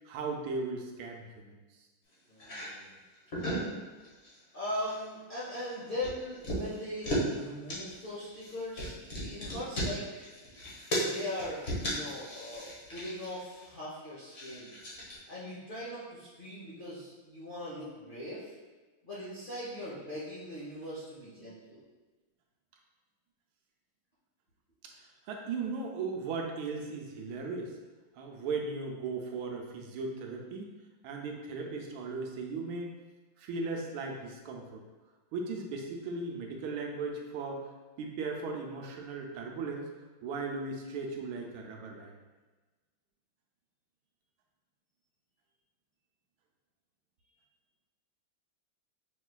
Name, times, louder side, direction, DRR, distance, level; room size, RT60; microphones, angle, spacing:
voice 1, 0.0-1.6 25.3-27.7 28.1-30.7 31.0-32.9 33.4-34.8 35.3-37.6 38.0-39.9 40.2-42.1, right 4 dB, 80° right, 1 dB, 1.4 m, -37 dB
voice 2, 2.3-3.0 4.5-10.3 11.0-14.8 15.3-18.5 19.0-21.8, left 1 dB, 75° left, -10 dB, 0.4 m, -40 dB
sound 1, 2.4-2.7 3.1-3.7 4.0-4.4 4.6-5.0 5.4-7.3 7.7-13.6 14.3-15.2, equal, 40° left, 1.0 m, -37 dB
5.5 x 3.1 x 2.2 m, 1.2 s
omnidirectional pair, 2.3 m